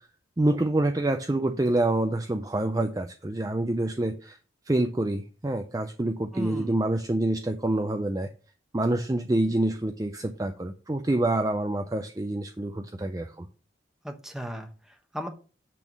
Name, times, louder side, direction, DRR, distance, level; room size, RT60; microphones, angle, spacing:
voice 1, 0.4-4.4 4.7-8.3 8.7-13.5, right 1 dB, 20° right, 6 dB, 0.4 m, -27 dB
voice 2, 6.3-6.8 14.0-15.3, equal, 5° right, 4 dB, 1.0 m, -36 dB
8.3 x 3.6 x 6.0 m, 0.37 s
head